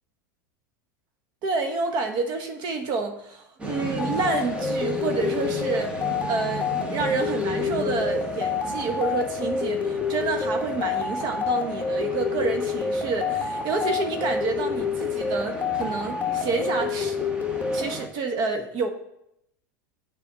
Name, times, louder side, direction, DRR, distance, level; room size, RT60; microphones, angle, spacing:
voice 1, 1.4-17.2 17.7-18.9, right 4 dB, 45° right, 5 dB, 1.2 m, -29 dB
sound 1, 3.6-18.1, right 1 dB, 10° right, 1.2 m, -36 dB
sound 2, 4.0-17.9, left 5 dB, 15° left, 1.0 m, -28 dB
7.1 x 4.2 x 6.0 m, 0.79 s
hypercardioid pair, 100°, 10 cm